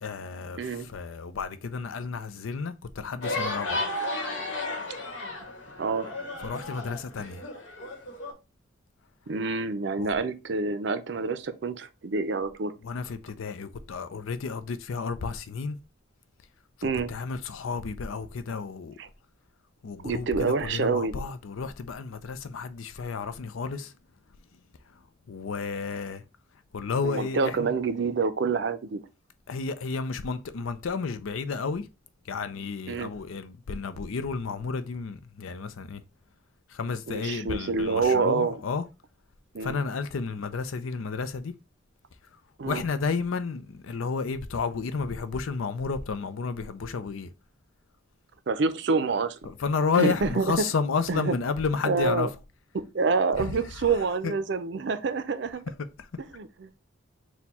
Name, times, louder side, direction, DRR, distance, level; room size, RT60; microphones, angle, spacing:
voice 1, 0.0-3.8 6.4-7.4 10.0-10.1 12.8-15.8 16.8-18.9 19.8-23.9 25.3-26.2 26.7-27.7 29.5-31.9 32.3-36.0 36.7-38.8 39.6-41.5 42.7-47.3 49.5-52.3 53.4-53.5 54.2-54.3, left 5 dB, 90° left, 0.5 m, -31 dB
sound 1, 3.2-8.3, left 2 dB, 70° left, 1.2 m, -33 dB
voice 2, 5.8-6.1 9.3-12.7 16.8-17.1 19.0-19.1 20.0-21.2 27.0-29.0 32.9-33.1 37.1-38.6 39.5-39.8 42.6-42.8 48.5-49.4 50.0-50.5 51.1-51.3 51.8-52.3 52.7-55.6 56.3-56.8, right 4 dB, 60° right, 0.5 m, -27 dB
4.3 x 2.2 x 4.1 m
head